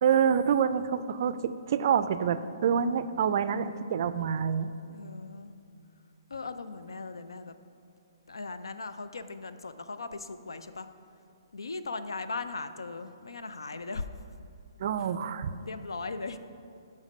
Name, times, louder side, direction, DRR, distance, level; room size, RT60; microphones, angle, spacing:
voice 1, 0.0-4.7 14.8-15.5, right 7 dB, 50° right, 13 dB, 0.3 m, -27 dB
voice 2, 4.9-5.5 6.3-7.5 8.3-10.9 11.5-14.1 15.0-15.1 15.6-16.4, left 3 dB, 90° left, 11 dB, 0.4 m, -38 dB
7.3 x 5.2 x 5.3 m, 2.5 s
hypercardioid pair, 140°, 2 cm